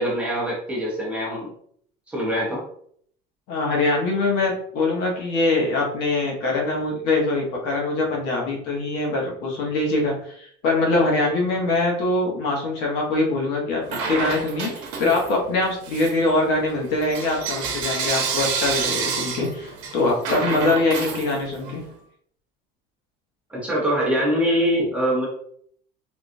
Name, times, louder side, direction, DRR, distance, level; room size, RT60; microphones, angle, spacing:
voice 1, 0.0-1.5 2.1-2.6 23.5-25.3, equal, 5° right, -6 dB, 0.8 m, -23 dB
voice 2, 3.5-21.8, left 2 dB, 55° left, -1 dB, 1.0 m, -23 dB
Bell / Coin (dropping), 13.9-15.4 15.8-21.8, right 5 dB, 80° right, 0.8 m, -29 dB
3.6 x 2.3 x 2.6 m, 0.63 s
cardioid pair, 175°, 20 cm